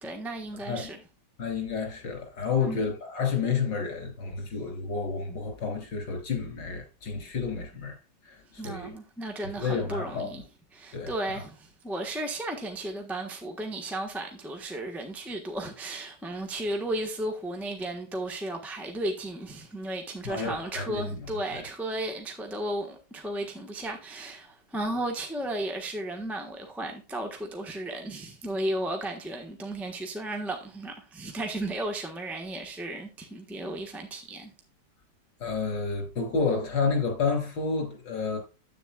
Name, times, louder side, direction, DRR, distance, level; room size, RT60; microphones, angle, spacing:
voice 1, 0.0-1.0 2.6-2.9 8.6-10.4 10.7-34.5, right 1 dB, ahead, 1.0 m, -34 dB
voice 2, 1.4-8.0 8.3-8.9 9.6-10.3 10.9-11.4 20.2-21.6 35.4-38.4, left 5 dB, 85° left, 3.4 m, -30 dB
10.0 x 8.3 x 2.3 m
omnidirectional pair, 1.9 m